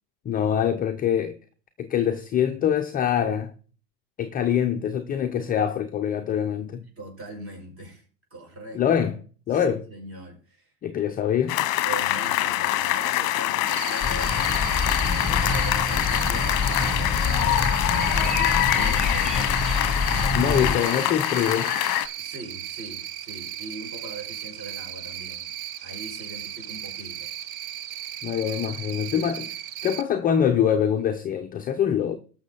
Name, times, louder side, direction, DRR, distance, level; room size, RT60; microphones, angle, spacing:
voice 1, 0.3-1.4 1.8-3.5 4.2-6.8 8.7-9.2 9.5-9.8 10.8-11.6 20.3-21.7 28.2-29.5 29.8-32.2, left 9 dB, 20° left, 0.6 m, -24 dB
voice 2, 7.0-8.0 8.3-8.9 9.5-10.7 11.8-14.9 15.3-19.3 20.4-21.0 22.2-25.6 25.8-27.3, right 1 dB, 25° right, 5.2 m, -40 dB
sound 1, 11.5-22.1, left 15 dB, 40° left, 1.1 m, -25 dB
Cricket, 13.7-30.0, right 11 dB, 55° right, 1.1 m, -36 dB
sound 2, 14.0-20.8, left 3 dB, ahead, 2.1 m, -27 dB
19.0 x 6.5 x 3.9 m
hypercardioid pair, 115°, 50 cm